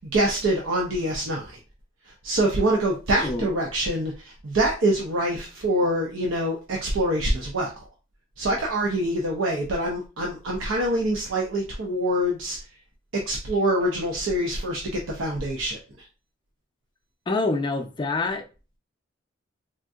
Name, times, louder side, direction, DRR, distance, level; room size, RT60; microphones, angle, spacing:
voice 1, 0.1-1.6 2.1-7.7 8.4-12.6 13.3-15.8, right 1 dB, 80° right, 0.6 m, -25 dB
voice 2, 17.3-18.4, left 3 dB, 25° left, 0.4 m, -26 dB
3.6 x 2.6 x 2.3 m
head